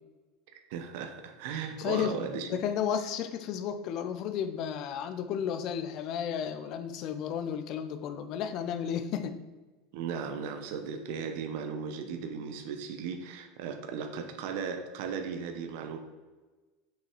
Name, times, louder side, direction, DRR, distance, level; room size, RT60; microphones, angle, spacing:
voice 1, 0.7-2.5 9.9-16.0, right 6 dB, 55° right, 6 dB, 0.9 m, -36 dB
voice 2, 1.8-2.1 2.5-9.3, left 8 dB, 40° left, 9 dB, 0.6 m, -33 dB
6.6 x 5.7 x 4.6 m, 1.3 s
supercardioid pair, 170°, 0 cm